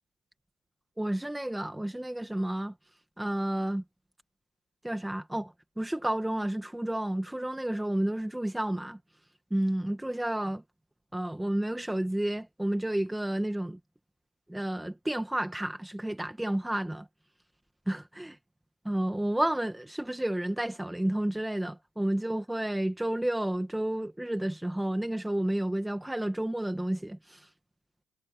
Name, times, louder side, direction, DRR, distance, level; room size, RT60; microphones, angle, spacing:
voice 1, 1.0-2.7 3.2-3.8 4.8-9.0 9.5-10.6 11.1-13.8 14.5-17.1 17.9-18.4 18.9-27.5, right 1 dB, 5° right, 2.0 m, -31 dB
cardioid pair, 90°, 0 cm